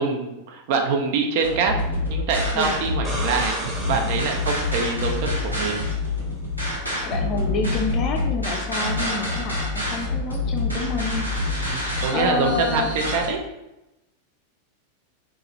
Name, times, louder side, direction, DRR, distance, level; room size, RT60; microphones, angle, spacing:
voice 1, 0.0-1.7 2.1-5.8 11.7-13.4, right 5 dB, 50° right, 3 dB, 0.4 m, -25 dB
sound 1, 1.4-13.3, left 2 dB, 90° right, 0.8 m, -27 dB
sound 2, 2.8-5.7 8.5-8.6, right 1 dB, 10° right, 0.8 m, -35 dB
voice 2, 7.0-11.3 12.1-12.9, left 4 dB, 35° left, 3 dB, 0.4 m, -28 dB
2.8 x 2.4 x 2.9 m, 0.93 s
figure-of-eight pair, 90°, 0 cm